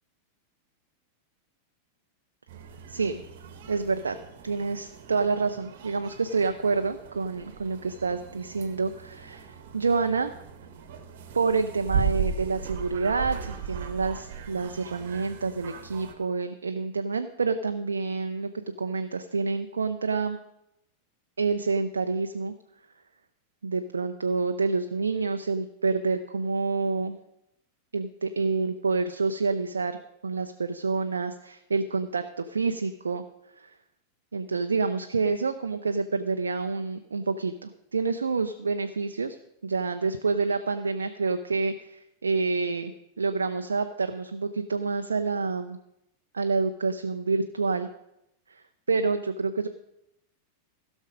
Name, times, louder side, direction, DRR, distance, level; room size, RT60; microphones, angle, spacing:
sound 1, 2.5-16.1, right 7 dB, 50° right, 1.2 m, -37 dB
voice 1, 2.9-3.2 3.7-4.2 4.4-10.3 11.3-18.5 18.8-20.4 21.4-22.5 23.6-27.2 27.9-30.0 30.2-33.2 33.6-33.8 34.3-39.4 39.6-42.9 43.2-45.8 46.3-47.9 48.5-49.7, right 4 dB, 75° right, 8 dB, 0.5 m, -28 dB
16.0 x 6.2 x 5.1 m, 0.84 s
figure-of-eight pair, 90°, 0 cm